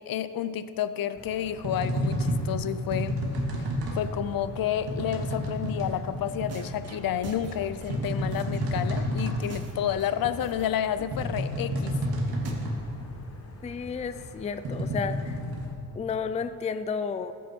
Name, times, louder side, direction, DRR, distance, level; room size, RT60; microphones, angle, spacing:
voice 1, 0.0-3.2 3.9-12.0, left 10 dB, 65° left, 13 dB, 0.6 m, -30 dB
sound 1, 1.1-15.7, left 2 dB, 40° left, 1.3 m, -47 dB
sound 2, 1.2-15.7, equal, 70° right, 2.5 m, -31 dB
sound 3, 6.1-6.2 6.5-9.1 9.4-10.7 11.0-11.1 11.4-11.5 11.7-11.8 12.1-12.2 12.4-12.5, right 4 dB, 40° right, 1.4 m, -43 dB
voice 2, 13.6-15.4 15.9-17.3, left 6 dB, 20° left, 11 dB, 0.4 m, -32 dB
21.0 x 9.4 x 4.5 m, 2.8 s
cardioid pair, 135°, 38 cm